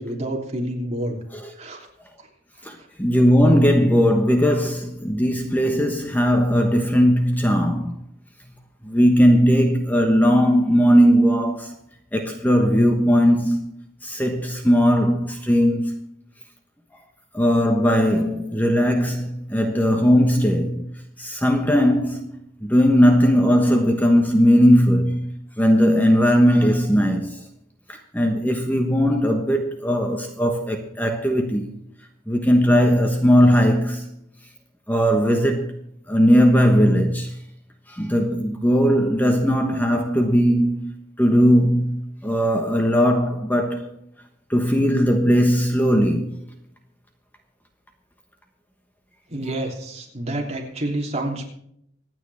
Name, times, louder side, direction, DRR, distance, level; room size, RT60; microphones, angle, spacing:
voice 1, 0.0-1.2 1.6-1.9 2.6-2.9 49.3-51.5, right 1 dB, 35° right, 3.1 m, -29 dB
voice 2, 2.6-7.9 8.8-11.7 12.1-13.7 14.0-15.9 17.3-20.9 21.2-22.3 22.6-27.4 27.9-31.7 32.3-34.1 34.9-35.7 36.1-37.4 37.9-40.9 41.2-43.9 44.5-46.4, equal, 10° left, 1.2 m, -18 dB
25.5 x 9.1 x 3.5 m
head